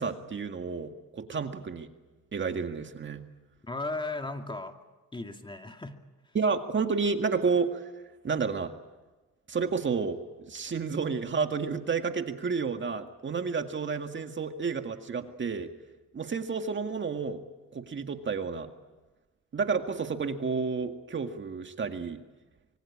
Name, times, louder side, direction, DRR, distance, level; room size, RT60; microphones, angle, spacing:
voice 1, 0.0-1.9 2.3-3.2 6.3-7.9 8.2-8.7 9.5-15.7 16.1-17.4 17.7-18.7 19.5-22.2, right 5 dB, 40° right, 6 dB, 2.0 m, -30 dB
voice 2, 3.6-4.8 5.1-6.0 6.2-6.4, left 2 dB, 15° left, 5 dB, 2.3 m, -36 dB
25.5 x 23.5 x 8.6 m, 1.2 s
cardioid pair, 90°, 30 cm